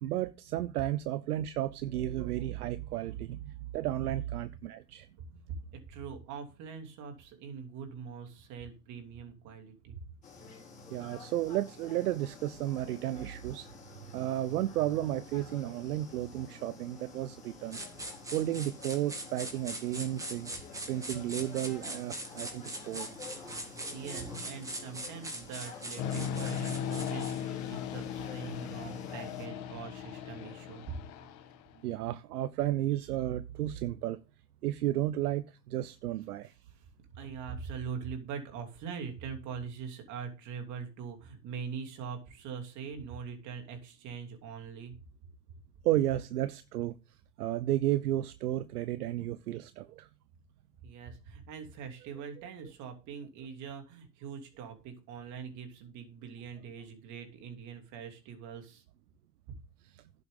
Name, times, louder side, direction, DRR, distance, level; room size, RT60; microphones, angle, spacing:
voice 1, 0.0-5.1 10.9-13.7 14.1-17.8 18.3-20.5 20.9-23.2 31.8-34.2 34.6-36.5 45.8-46.9 47.4-50.1 59.8-60.0, right 14 dB, 65° right, 0.8 m, -33 dB
voice 2, 5.5-10.0 23.9-31.0 36.4-36.9 37.1-44.9 50.8-58.8, right 6 dB, 35° right, 2.9 m, -43 dB
sound 1, 10.2-29.5, left 4 dB, 15° left, 4.1 m, -50 dB
sound 2, 17.7-27.5, right 1 dB, 5° right, 2.1 m, -42 dB
sound 3, 26.0-31.8, left 8 dB, 35° left, 1.5 m, -37 dB
11.0 x 7.8 x 3.8 m
hypercardioid pair, 130°, 49 cm